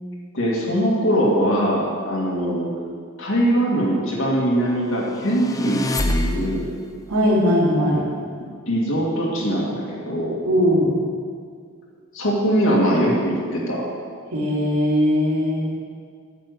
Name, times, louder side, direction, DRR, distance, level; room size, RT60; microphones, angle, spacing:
voice 1, 0.3-2.7 3.2-6.7 8.7-10.4 12.1-13.8, equal, 65° left, -4 dB, 2.2 m, -21 dB
sound 1, 5.1-6.9, left 1 dB, 15° left, 0.5 m, -26 dB
voice 2, 7.1-8.0 10.4-11.0 14.3-15.7, equal, 90° right, -4 dB, 2.9 m, -19 dB
10.0 x 6.0 x 8.1 m, 2.1 s
head